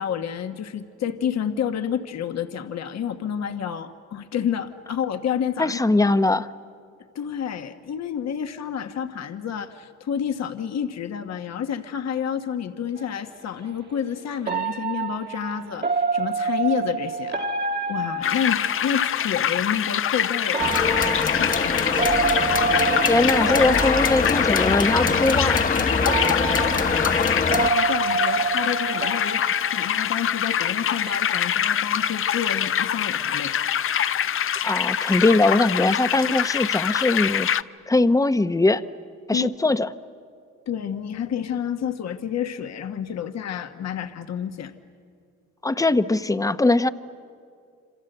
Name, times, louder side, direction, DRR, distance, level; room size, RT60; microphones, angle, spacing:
voice 1, 0.0-5.8 7.1-17.4 17.9-20.6 21.4-22.1 26.1-26.8 27.2-29.4 29.7-33.5 39.3-39.5 40.7-44.7, left 8 dB, 60° left, 7 dB, 1.3 m, -29 dB
voice 2, 5.6-6.5 23.1-25.6 34.6-37.5 37.9-38.8 39.3-39.9 45.6-46.9, left 2 dB, 10° left, 12 dB, 0.8 m, -21 dB
sound 1, 13.0-13.1 14.5-19.2 20.5-24.7 25.5-25.6 26.1-30.5 30.8-31.1, right 5 dB, 35° right, 1.4 m, -28 dB
sound 2, 18.2-37.6, left 9 dB, 45° left, 0.6 m, -25 dB
sound 3, 20.6-27.7, left 4 dB, 25° left, 1.1 m, -24 dB
26.5 x 26.5 x 8.0 m, 2.3 s
cardioid pair, 90°, 30 cm